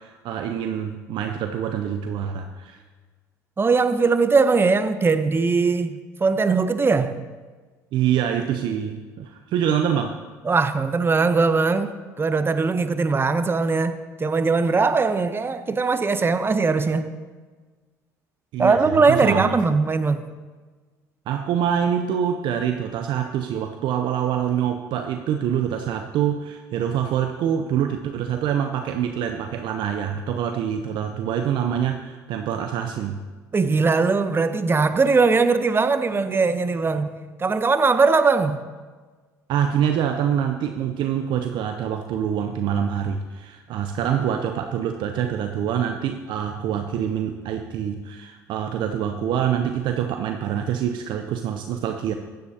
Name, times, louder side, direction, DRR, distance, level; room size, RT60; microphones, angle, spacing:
voice 1, 0.0-2.8 7.9-10.2 18.5-19.5 21.3-33.2 39.5-52.1, right 9 dB, 60° right, 6 dB, 0.6 m, -25 dB
voice 2, 3.6-7.2 10.4-17.1 18.6-20.2 33.5-37.1 37.4-38.6, right 4 dB, 25° right, 11 dB, 0.8 m, -20 dB
15.5 x 10.5 x 2.8 m, 1.4 s
hypercardioid pair, 65°, 9 cm